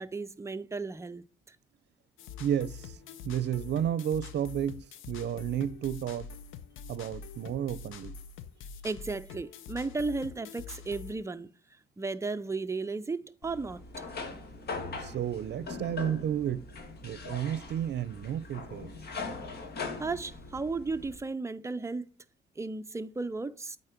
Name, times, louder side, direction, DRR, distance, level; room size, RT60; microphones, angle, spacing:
voice 1, 0.0-1.6 8.8-11.5 12.0-13.8 20.0-22.1 22.6-23.8, right 3 dB, 15° right, 0.5 m, -34 dB
sound 1, 2.2-11.1, left 7 dB, 85° left, 0.8 m, -45 dB
voice 2, 2.4-2.9 3.2-6.3 6.9-8.1 15.0-16.7 17.0-18.9, right 10 dB, 60° right, 0.6 m, -32 dB
sound 2, 13.4-21.2, left 4 dB, 55° left, 1.7 m, -41 dB
8.6 x 4.3 x 4.5 m
cardioid pair, 90°, 20 cm